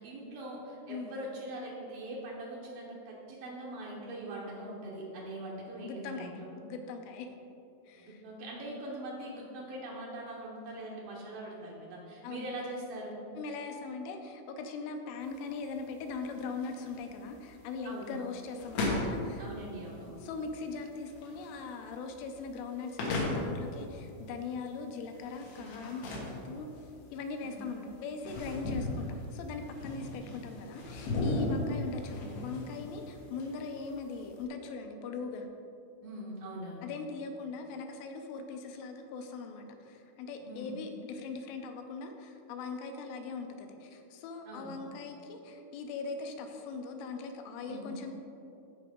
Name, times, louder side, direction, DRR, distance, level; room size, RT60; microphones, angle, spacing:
voice 1, 0.0-6.5 8.0-13.3 17.8-18.2 19.4-20.2 25.6-25.9 27.4-27.7 36.0-36.9 40.4-40.8 44.5-44.8 47.7-48.0, right 1 dB, 90° right, -4 dB, 2.0 m, -42 dB
voice 2, 5.8-7.3 7.9-8.2 12.2-12.5 13.4-19.5 20.2-35.5 36.8-48.1, left 4 dB, 85° left, 5 dB, 3.1 m, -40 dB
sound 1, 15.2-34.4, left 2 dB, 65° left, 3.1 m, -38 dB
14.5 x 4.9 x 3.6 m, 2.8 s
omnidirectional pair, 5.6 m